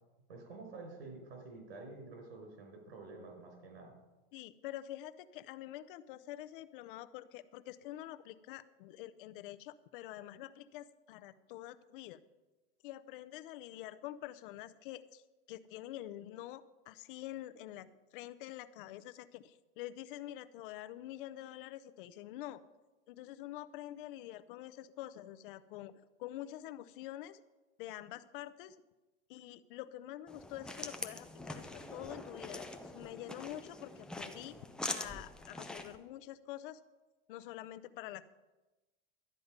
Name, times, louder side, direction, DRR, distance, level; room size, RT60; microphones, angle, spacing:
voice 1, 0.3-3.9, right 3 dB, 90° right, 3 dB, 5.2 m, -49 dB
voice 2, 4.3-12.2 12.8-15.2 15.5-22.6 23.1-27.4 27.8-28.8 29.3-34.6 34.8-36.8 37.3-38.2, left 14 dB, 60° left, 14 dB, 0.7 m, -47 dB
sound 1, 30.3-36.0, left 2 dB, 5° left, 0.5 m, -44 dB
12.5 x 9.4 x 5.2 m, 1.1 s
supercardioid pair, 155°, 30 cm